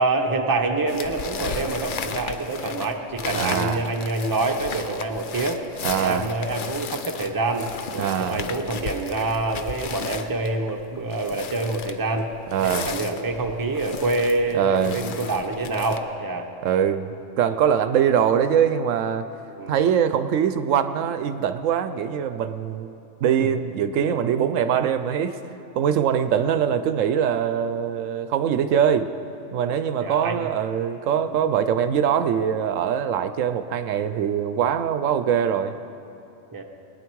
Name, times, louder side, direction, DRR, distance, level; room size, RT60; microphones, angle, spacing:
voice 1, 0.0-5.6 5.9-12.3 12.6-16.5 19.6-19.8 30.0-30.4 31.3-31.4 36.5-36.6, right 2 dB, 20° right, 3 dB, 0.8 m, -26 dB
sound 1, 0.9-16.0, left 6 dB, 50° left, 0.6 m, -35 dB
voice 2, 3.3-3.8 5.8-6.3 8.0-8.4 12.5-12.9 14.5-15.0 16.6-17.1 17.4-19.2 19.7-22.9 23.2-25.4 25.8-29.1 29.5-35.8, right 8 dB, 80° right, 11 dB, 0.9 m, -22 dB
21.0 x 9.7 x 4.6 m, 2.8 s
omnidirectional pair, 1.3 m